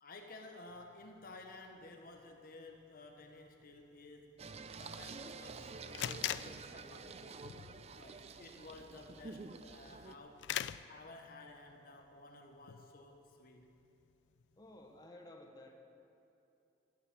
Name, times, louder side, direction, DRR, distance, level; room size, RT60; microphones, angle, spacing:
voice 1, 0.0-4.4 4.8-7.6 7.9-10.5 10.9-13.8, left 2 dB, 55° left, 3 dB, 1.0 m, -54 dB
sound 1, 0.7-15.1, left 11 dB, 85° left, 0.3 m, -47 dB
Singing, 4.4-10.2, right 4 dB, 35° right, 0.5 m, -49 dB
voice 2, 14.6-15.8, left 1 dB, 20° left, 2 dB, 1.2 m, -54 dB
14.5 x 9.0 x 7.3 m, 2.7 s
head